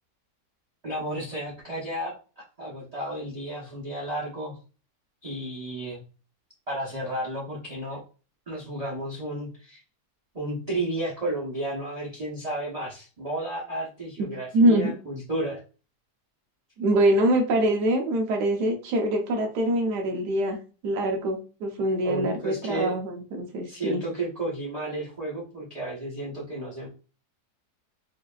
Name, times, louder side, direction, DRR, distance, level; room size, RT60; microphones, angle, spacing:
voice 1, 0.8-4.6 5.2-6.0 6.7-8.0 8.5-9.8 10.3-15.6 22.0-23.0 23.7-26.9, right 1 dB, 30° right, -5 dB, 0.8 m, -32 dB
voice 2, 14.5-14.9 16.8-20.6 20.8-24.0, right 1 dB, 80° right, 2 dB, 1.5 m, -24 dB
5.1 x 2.7 x 2.3 m, 0.35 s
omnidirectional pair, 1.8 m